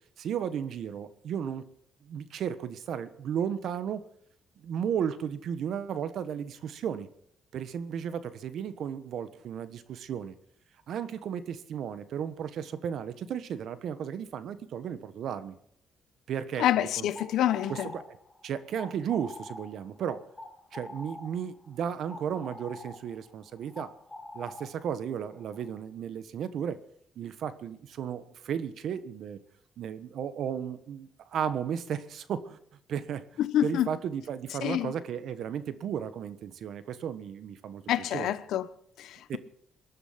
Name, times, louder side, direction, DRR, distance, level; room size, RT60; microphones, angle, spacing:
voice 1, 0.2-1.7 2.0-4.0 4.6-7.1 7.5-10.3 10.9-15.5 16.3-16.7 17.0-17.1 17.7-18.2 18.4-20.2 20.7-23.9 24.3-26.8 27.2-29.4 29.8-32.6 32.9-33.2 33.6-37.8 38.1-38.3 39.3-39.4, right 8 dB, 70° right, 1.3 m, -34 dB
voice 2, 16.6-17.9 33.4-33.9 34.6-34.9 37.9-38.7 39.0-39.4, left 12 dB, 80° left, 0.9 m, -27 dB
sound 1, 17.0-25.8, left 2 dB, 20° left, 4.7 m, -46 dB
20.5 x 11.0 x 5.9 m
cardioid pair, 90°, 0 cm